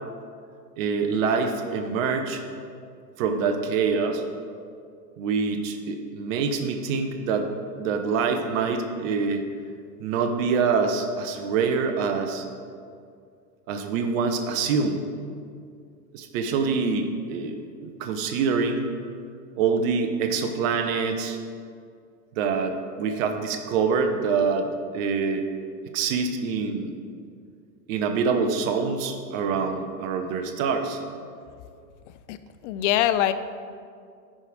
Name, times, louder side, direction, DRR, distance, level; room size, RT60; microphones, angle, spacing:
voice 1, 0.8-2.4 3.2-4.2 5.2-7.5 7.8-9.4 10.0-12.4 13.7-15.0 16.1-18.9 19.6-21.4 22.3-25.5 25.9-26.9 27.9-31.0, right 5 dB, 50° right, 6 dB, 0.9 m, -25 dB
voice 2, 32.6-33.3, left 12 dB, 45° left, 12 dB, 0.5 m, -22 dB
9.7 x 4.9 x 5.0 m, 2.3 s
hypercardioid pair, 110°, 49 cm